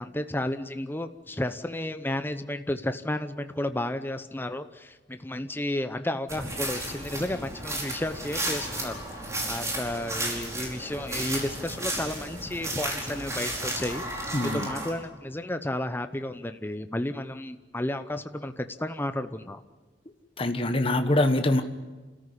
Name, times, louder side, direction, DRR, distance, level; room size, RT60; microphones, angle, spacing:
voice 1, 0.0-9.0 9.5-19.6, left 1 dB, 10° left, 10 dB, 0.8 m, -32 dB
sound 1, 6.3-14.9, right 1 dB, 15° right, 5.0 m, -33 dB
voice 2, 14.3-14.7 20.4-21.6, left 1 dB, 30° left, 7 dB, 1.2 m, -24 dB
30.0 x 14.0 x 9.9 m, 1.3 s
head